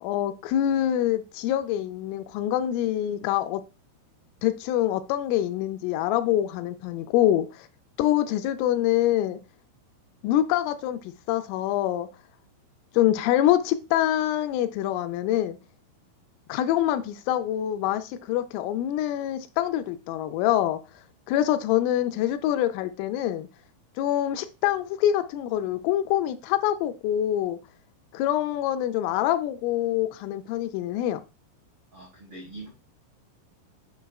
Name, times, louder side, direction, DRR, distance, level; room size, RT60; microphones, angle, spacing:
voice 1, 0.0-3.6 4.4-7.7 8.0-9.4 10.2-12.1 12.9-15.6 16.5-20.8 21.3-23.5 24.0-27.6 28.1-31.2, left 12 dB, 85° left, 3.1 m, -25 dB
voice 2, 31.9-32.7, right 2 dB, 85° right, 1.2 m, -43 dB
7.2 x 5.7 x 2.3 m
omnidirectional pair, 5.9 m